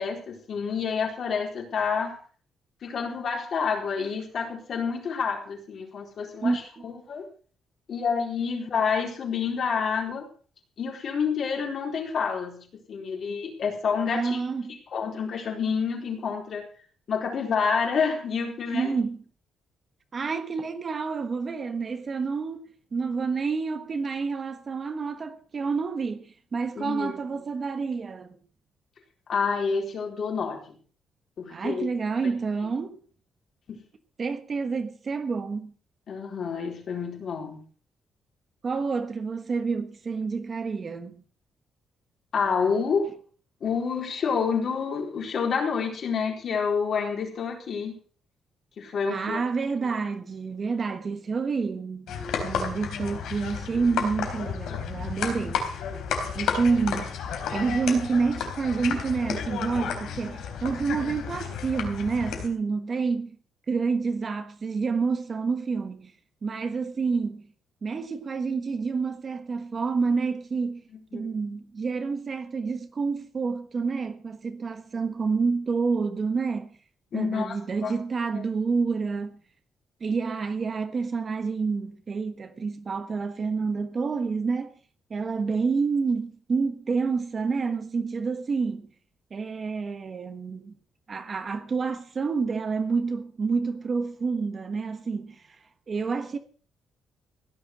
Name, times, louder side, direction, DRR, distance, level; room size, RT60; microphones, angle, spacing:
voice 1, 0.0-2.2 2.8-7.3 7.9-10.3 10.8-14.4 14.9-16.7 17.1-19.0 26.8-27.1 29.3-30.8 31.4-31.9 33.7-33.8 36.1-37.6 42.3-43.1 43.6-48.0 48.8-49.4 71.1-71.3 77.1-77.6 77.8-77.9 78.3-78.4, left 6 dB, 45° left, 4.2 m, -28 dB
voice 2, 14.1-14.8 18.7-19.2 20.1-28.4 31.5-33.0 34.2-35.7 38.6-41.1 49.1-52.1 52.4-55.7 56.3-57.1 57.5-63.4 63.7-66.1 66.4-67.5 67.8-70.8 71.1-76.8 77.1-79.4 80.0-84.7 85.1-88.9 89.3-90.7 91.1-95.6 95.9-96.4, right 4 dB, 30° right, 1.3 m, -28 dB
sound 1, 52.1-62.5, left 6 dB, 85° left, 3.8 m, -32 dB
16.5 x 10.5 x 6.1 m
cardioid pair, 170°, 0 cm